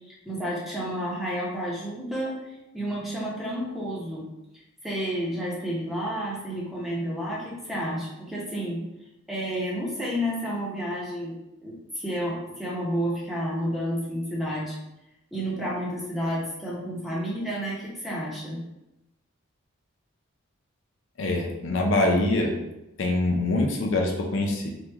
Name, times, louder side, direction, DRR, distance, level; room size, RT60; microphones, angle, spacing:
voice 1, 0.0-4.3 4.8-8.8 9.3-14.8 15.3-18.6, equal, ahead, -6 dB, 0.7 m, -31 dB
voice 2, 21.2-22.5 23.0-24.7, left 2 dB, 60° left, 1 dB, 0.4 m, -24 dB
2.9 x 2.2 x 3.3 m, 0.92 s
head